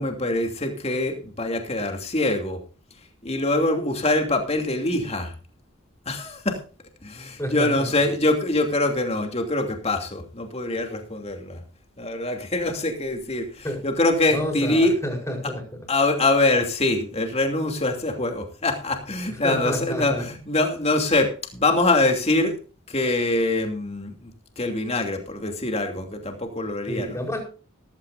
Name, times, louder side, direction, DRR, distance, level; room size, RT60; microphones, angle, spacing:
voice 1, 0.0-2.6 3.2-5.3 6.1-6.6 7.0-11.6 12.0-14.9 15.9-22.5 22.9-27.2, left 2 dB, 30° left, 4 dB, 2.8 m, -24 dB
voice 2, 7.4-8.1 13.6-13.8 14.3-15.8 19.3-20.3 26.9-27.4, equal, 15° left, 3 dB, 4.8 m, -30 dB
16.5 x 15.5 x 2.6 m, 0.36 s
head